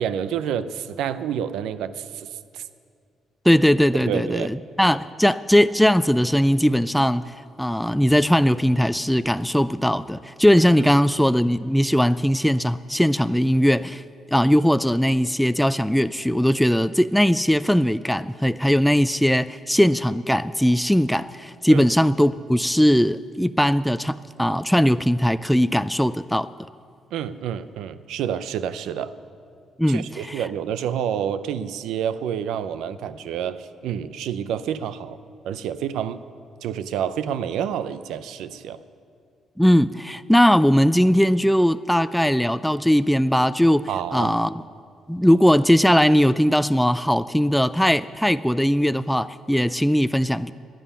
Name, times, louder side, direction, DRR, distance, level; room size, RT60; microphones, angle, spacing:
voice 1, 0.0-2.6 4.0-4.5 10.8-10.9 21.7-21.9 27.1-29.1 29.9-35.2 35.4-36.2 36.6-38.8 43.9-44.3, right 9 dB, 85° right, 14 dB, 0.6 m, -28 dB
voice 2, 3.5-14.0 14.3-26.5 29.8-30.4 39.6-44.6 45.1-50.5, equal, ahead, 13 dB, 0.3 m, -19 dB
12.5 x 9.3 x 9.9 m, 2.3 s
cardioid pair, 90°, 0 cm